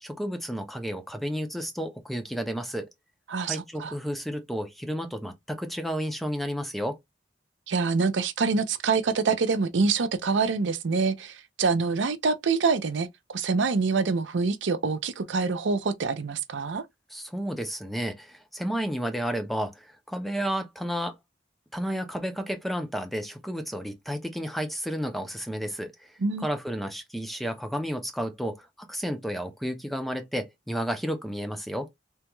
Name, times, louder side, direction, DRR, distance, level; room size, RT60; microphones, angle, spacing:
voice 1, 0.0-2.9 3.4-7.0 17.1-21.1 21.7-26.1 26.4-31.9, equal, ahead, 0.5 m, -32 dB
voice 2, 3.3-3.9 7.7-16.8 26.2-26.4, right 4 dB, 85° right, 0.5 m, -26 dB
3.5 x 2.2 x 2.9 m
head